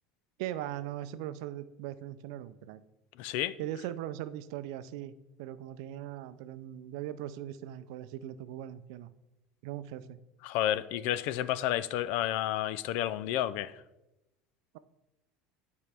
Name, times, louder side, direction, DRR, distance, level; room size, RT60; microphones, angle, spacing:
voice 1, 0.4-2.8 3.6-9.1 9.6-10.2, right 12 dB, 75° right, 0.4 m, -40 dB
voice 2, 3.2-3.6 10.4-13.7, left 12 dB, 65° left, 0.4 m, -31 dB
11.0 x 4.5 x 3.4 m
supercardioid pair, 120°, 3 cm